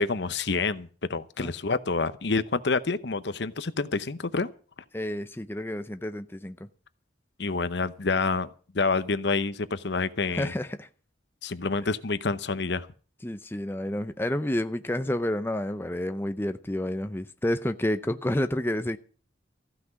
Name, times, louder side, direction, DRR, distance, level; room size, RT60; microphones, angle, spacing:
voice 1, 0.0-4.5 7.4-8.5 8.7-10.5 11.4-12.9, left 4 dB, 60° left, 0.8 m, -28 dB
voice 2, 4.9-6.7 10.3-10.9 13.2-19.0, left 1 dB, 10° left, 0.6 m, -29 dB
15.0 x 6.0 x 9.6 m
head